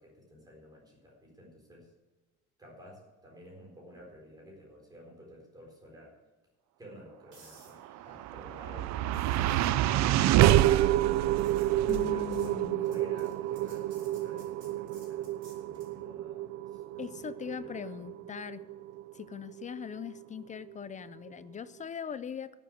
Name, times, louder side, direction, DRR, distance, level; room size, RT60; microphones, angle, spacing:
voice 1, 0.0-1.9 2.6-6.2 6.8-11.2 11.8-16.4 16.7-18.1, equal, 15° right, -1 dB, 4.3 m, -52 dB
sound 1, 7.3-16.0 20.2-20.4, right 3 dB, 40° right, 4.4 m, -59 dB
sound 2, 7.8-20.2, right 13 dB, 65° right, 0.5 m, -28 dB
voice 2, 11.9-13.0 17.0-18.6 19.1-22.6, left 8 dB, 25° left, 15 dB, 0.4 m, -40 dB
13.0 x 7.7 x 8.1 m, 1.2 s
cardioid pair, 165°, 30 cm